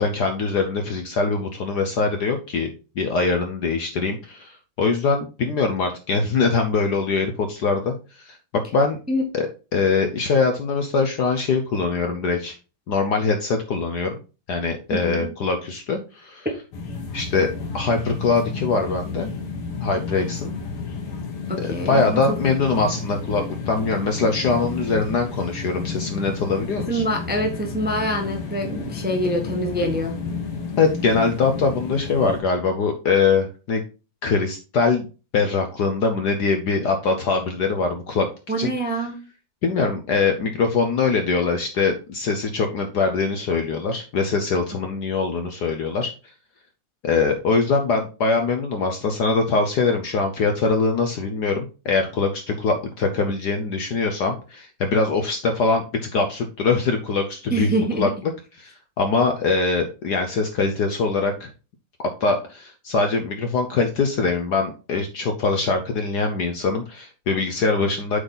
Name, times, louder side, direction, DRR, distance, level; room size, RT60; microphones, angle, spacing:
voice 1, 0.0-2.7 3.0-9.0 9.3-9.5 9.7-12.6 12.9-14.2 14.5-16.5 17.1-17.5 17.7-19.3 19.8-20.5 21.6-27.0 30.8-33.8 34.2-35.1 35.3-38.3 38.6-38.7 39.6-46.3 47.0-57.7 58.0-58.1 58.6-61.5 62.2-68.2, left 4 dB, 60° left, 5 dB, 1.1 m, -22 dB
voice 2, 14.9-15.3 21.5-22.2 26.9-30.2 38.5-39.2 57.5-58.1, right 1 dB, 5° right, 2 dB, 0.8 m, -25 dB
sound 1, 16.7-32.4, left 4 dB, 85° left, 2.3 m, -31 dB
8.0 x 4.1 x 3.9 m, 0.33 s
omnidirectional pair, 2.4 m